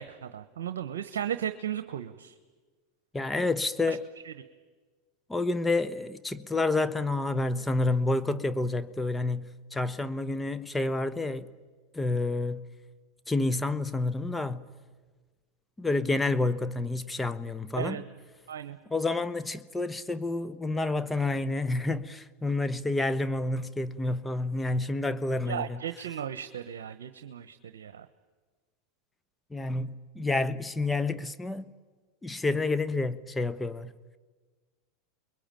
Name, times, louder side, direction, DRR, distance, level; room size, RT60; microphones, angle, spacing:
voice 1, 0.0-2.3 3.9-4.0 4.3-4.4 17.8-18.0 18.5-18.8 25.4-28.0, right 9 dB, 85° right, 1.0 m, -35 dB
voice 2, 3.1-4.0 5.3-11.5 11.9-12.7 13.3-14.7 15.8-18.0 18.9-25.8 29.5-31.6 32.2-33.9, left 2 dB, 10° left, 1.1 m, -29 dB
29.0 x 21.5 x 9.1 m
hypercardioid pair, 100°, 0 cm